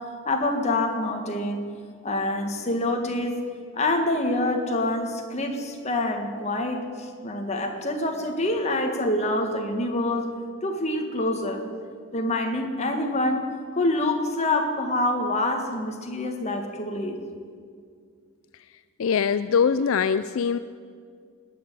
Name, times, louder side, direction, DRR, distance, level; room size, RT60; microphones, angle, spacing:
voice 1, 0.2-1.6 2.0-3.4 3.7-10.3 10.6-11.6 12.1-13.5 13.7-17.2, left 1 dB, 30° left, 3 dB, 1.7 m, -26 dB
voice 2, 19.0-20.6, left 6 dB, 70° left, 13 dB, 0.4 m, -22 dB
19.5 x 6.8 x 10.0 m, 2.1 s
head